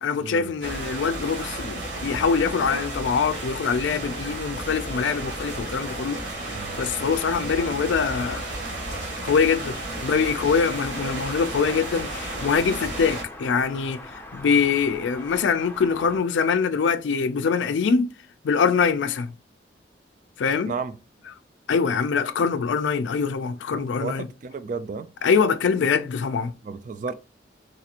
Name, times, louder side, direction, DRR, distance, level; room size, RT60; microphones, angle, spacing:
voice 1, 0.0-6.2 6.8-8.5 9.2-18.1 18.4-19.3 20.4-20.7 21.7-24.3 25.2-26.5, left 5 dB, 85° left, 0.4 m, -24 dB
sound 1, 0.6-13.2, right 2 dB, 75° right, 1.3 m, -33 dB
voice 2, 6.5-6.8 20.7-20.9 23.7-25.1 26.6-27.1, right 5 dB, 45° right, 0.3 m, -33 dB
sound 2, 10.9-16.2, left 1 dB, 10° left, 0.5 m, -42 dB
3.9 x 2.4 x 2.8 m
head